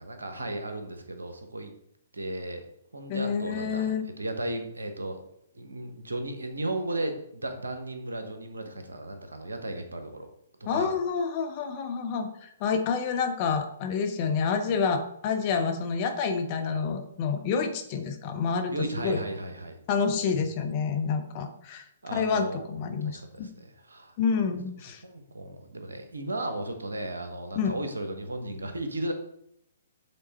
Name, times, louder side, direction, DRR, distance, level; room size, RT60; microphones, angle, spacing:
voice 1, 0.0-1.7 2.1-2.6 2.9-5.2 5.5-10.3 10.6-10.9 18.7-19.8 20.2-20.4 22.0-24.2 25.0-29.1, right 1 dB, 75° right, 6 dB, 1.1 m, -35 dB
voice 2, 3.1-4.0 10.6-19.2 19.9-21.8 22.1-23.5 24.2-25.0 27.5-27.7, left 5 dB, 35° left, 7 dB, 0.9 m, -28 dB
7.7 x 3.7 x 4.1 m, 0.75 s
figure-of-eight pair, 125°, 0 cm